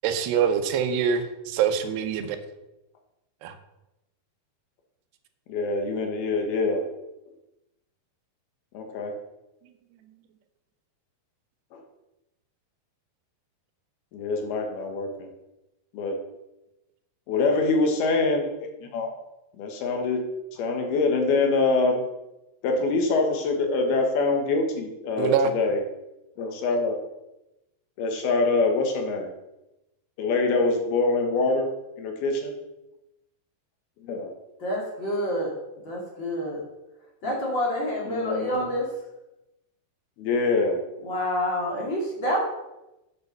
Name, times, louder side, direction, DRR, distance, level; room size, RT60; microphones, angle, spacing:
voice 1, 0.0-2.4 3.4-3.5 25.2-25.5, right 7 dB, 85° right, 8 dB, 3.0 m, -24 dB
voice 2, 5.5-6.8 8.7-9.1 11.7-11.8 14.1-15.3 15.9-16.2 17.3-18.5 18.8-19.1 19.6-20.2 20.5-22.0 22.6-25.8 26.4-27.0 28.0-29.3 30.2-31.7 32.0-32.5 34.0-34.3 37.2-37.3 38.1-38.7 40.2-40.8, left 3 dB, 75° left, 3 dB, 3.1 m, -24 dB
voice 3, 34.6-35.5 35.8-36.6 37.2-38.9 41.0-42.4, equal, 35° left, -3 dB, 2.4 m, -27 dB
7.9 x 6.7 x 6.7 m, 0.94 s
omnidirectional pair, 4.7 m